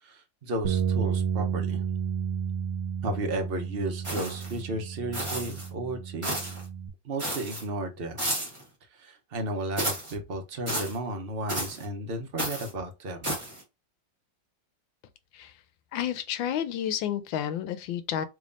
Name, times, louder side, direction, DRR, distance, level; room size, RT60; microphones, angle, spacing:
voice 1, 0.0-1.8 3.0-6.4 7.0-8.2 8.9-13.3, right 1 dB, 50° right, 0.7 m, -34 dB
sound 1, 0.6-6.9, right 7 dB, 90° right, 1.3 m, -31 dB
sound 2, 4.0-4.6 5.1-5.7 6.2-6.6 7.2-7.6 8.2-8.6 9.8-10.1 10.7-11.0 11.5-11.8 12.4-12.7 13.2-13.6, right 1 dB, 20° right, 1.3 m, -32 dB
voice 2, 15.9-18.3, left 10 dB, 90° left, 1.4 m, -30 dB
3.4 x 3.3 x 2.5 m
omnidirectional pair, 2.1 m